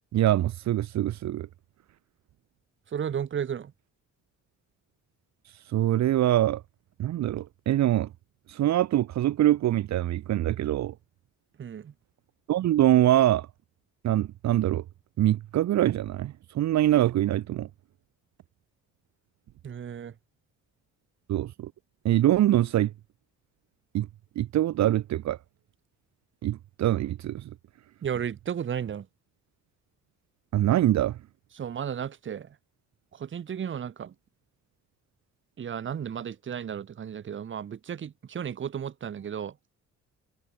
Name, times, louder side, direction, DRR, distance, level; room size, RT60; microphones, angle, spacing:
voice 1, 0.1-1.5 5.7-6.6 7.0-8.1 8.5-10.9 12.5-13.5 14.0-14.8 15.2-17.7 21.3-21.7 22.0-22.9 23.9-24.1 24.4-25.4 26.4-27.5 30.5-31.2, right 13 dB, 65° right, 0.8 m, -24 dB
voice 2, 2.9-3.7 11.6-11.9 19.6-20.1 28.0-29.1 31.5-32.6 33.1-34.1 35.6-39.6, right 8 dB, 40° right, 1.0 m, -34 dB
cardioid pair, 90°, 30 cm